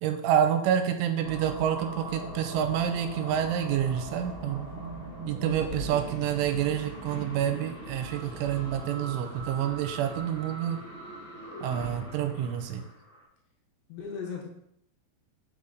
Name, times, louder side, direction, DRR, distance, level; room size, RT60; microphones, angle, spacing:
voice 1, 0.0-4.7 5.3-10.8 11.6-12.8, right 9 dB, 85° right, 7 dB, 3.1 m, -28 dB
sound 1, 1.2-13.2, right 2 dB, 40° left, 1.1 m, -41 dB
voice 2, 5.4-6.3 13.9-14.4, left 5 dB, 70° left, 0 dB, 3.1 m, -39 dB
6.4 x 5.6 x 3.9 m, 0.73 s
omnidirectional pair, 5.6 m